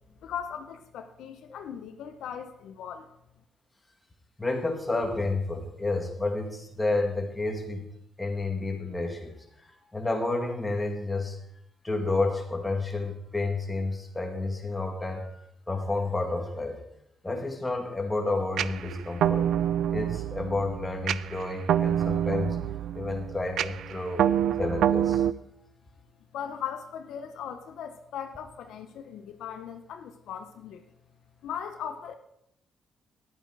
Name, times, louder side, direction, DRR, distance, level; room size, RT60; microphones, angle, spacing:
voice 1, 0.2-3.1 26.3-30.8 31.4-32.2, left 8 dB, 80° left, 7 dB, 0.8 m, -38 dB
voice 2, 4.4-7.9 8.2-11.4 11.8-16.8 17.2-19.5 19.9-22.6 22.9-24.3 24.6-25.3, left 2 dB, 15° left, 2 dB, 2.1 m, -30 dB
sound 1, 18.6-25.3, right 10 dB, 75° right, 0.4 m, -27 dB
10.5 x 8.8 x 4.7 m, 0.77 s
cardioid pair, 90°, 0 cm